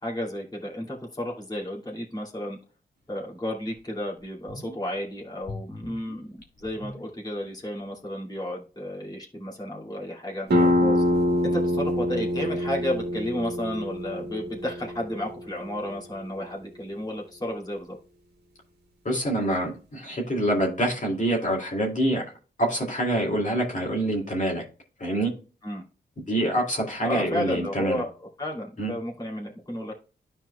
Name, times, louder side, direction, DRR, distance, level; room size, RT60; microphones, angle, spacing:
voice 1, 0.0-2.6 3.1-11.0 11.4-18.0 25.6-25.8 27.0-30.0, left 1 dB, 20° left, -3 dB, 2.2 m, -32 dB
sound 1, 3.2-3.3 3.7-3.8 4.2-5.0 5.4-7.7 7.9-8.0, left 2 dB, 60° left, 1.8 m, -42 dB
sound 2, 10.5-15.9, left 1 dB, 65° right, 1.6 m, -25 dB
voice 2, 19.0-22.2 22.6-24.6 25.0-25.3 26.3-28.0 28.8-28.9, right 1 dB, 45° left, -2 dB, 2.2 m, -26 dB
13.0 x 4.5 x 2.2 m, 0.37 s
cardioid pair, 65°, 19 cm